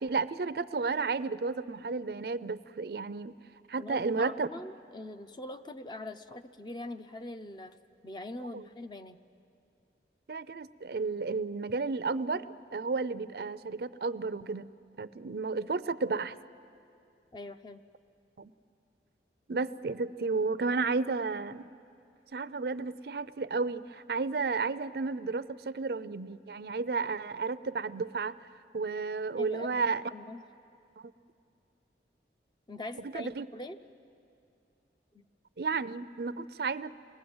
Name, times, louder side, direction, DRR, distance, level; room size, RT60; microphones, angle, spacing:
voice 1, 0.0-3.4 3.7-4.5 8.5-8.7 10.3-12.4 12.7-14.7 15.0-16.4 18.4-18.5 19.5-21.7 22.3-28.3 28.7-30.0 33.1-33.5 35.6-36.9, right 4 dB, 60° right, 14 dB, 0.5 m, -32 dB
voice 2, 3.8-7.7 8.0-9.2 17.3-17.8 29.4-29.8 30.1-30.4 32.7-33.8 35.1-35.2, left 1 dB, 25° left, 9 dB, 0.6 m, -42 dB
27.5 x 20.0 x 7.9 m, 2.6 s
head